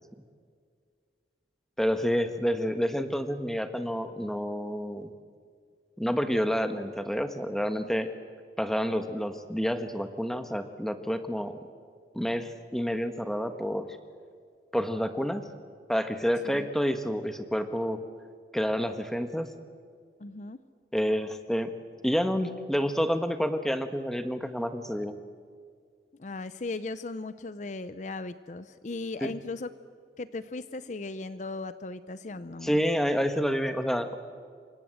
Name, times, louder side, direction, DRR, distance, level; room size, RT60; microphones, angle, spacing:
voice 1, 1.8-5.1 6.0-8.1 8.6-11.6 12.1-13.9 14.7-15.4 15.9-18.0 18.5-19.5 20.9-21.7 22.0-25.2 29.2-29.3 32.6-34.1, equal, ahead, 8 dB, 1.3 m, -29 dB
voice 2, 20.2-20.6 26.2-29.7 30.2-32.8, left 3 dB, 45° left, 13 dB, 0.6 m, -37 dB
27.5 x 24.5 x 7.8 m, 2.1 s
head